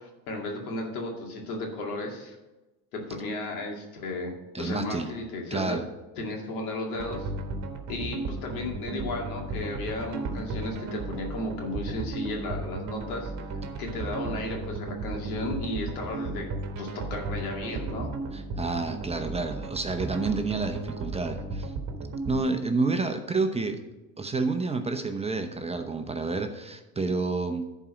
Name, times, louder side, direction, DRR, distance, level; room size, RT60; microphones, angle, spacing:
voice 1, 0.0-2.4 2.9-5.8 6.2-7.3 7.9-13.3 13.8-16.5 16.8-18.1, left 2 dB, 85° left, 0 dB, 2.4 m, -34 dB
voice 2, 4.5-5.1 5.5-5.8 18.3-21.7 22.3-23.8 24.2-27.7, right 3 dB, 15° right, 6 dB, 0.8 m, -29 dB
sound 1, 6.9-22.4, right 3 dB, 45° right, 1.4 m, -35 dB
11.0 x 4.6 x 6.2 m, 1.1 s
supercardioid pair, 100°, 42 cm